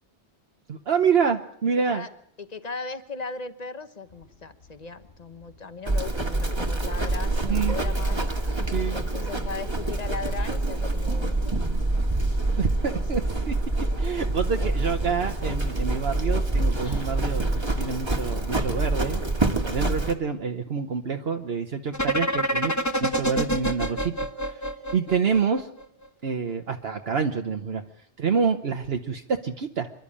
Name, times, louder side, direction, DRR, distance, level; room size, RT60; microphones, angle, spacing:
voice 1, 0.7-2.1 7.4-7.8 8.7-9.0 12.6-13.6 14.0-17.5 17.8-19.2 19.5-22.7 23.0-24.1 24.4-24.6 24.9-25.7 26.2-27.8 28.2-29.9, right 6 dB, 65° right, 5 dB, 1.2 m, -27 dB
voice 2, 2.4-8.3 8.9-11.6 12.8-13.2, left 4 dB, 40° left, 11 dB, 1.2 m, -37 dB
sound 1, 4.1-19.2, left 3 dB, 60° left, 3.3 m, -48 dB
Livestock farm animals working animals, 5.9-20.1, right 2 dB, 25° right, 1.6 m, -26 dB
sound 2, 21.9-25.8, right 1 dB, 15° left, 1.0 m, -27 dB
27.0 x 12.0 x 8.6 m, 0.73 s
omnidirectional pair, 1.1 m